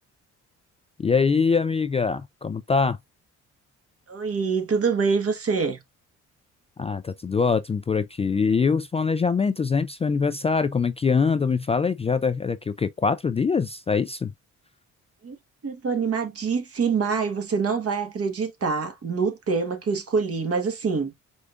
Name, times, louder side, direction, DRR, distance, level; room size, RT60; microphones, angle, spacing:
voice 1, 1.0-3.0 6.8-14.3, left 5 dB, 20° left, 0.3 m, -23 dB
voice 2, 4.1-5.8 15.2-15.3 15.6-21.1, right 5 dB, 50° right, 1.5 m, -25 dB
5.0 x 3.6 x 2.5 m
cardioid pair, 90°, 30 cm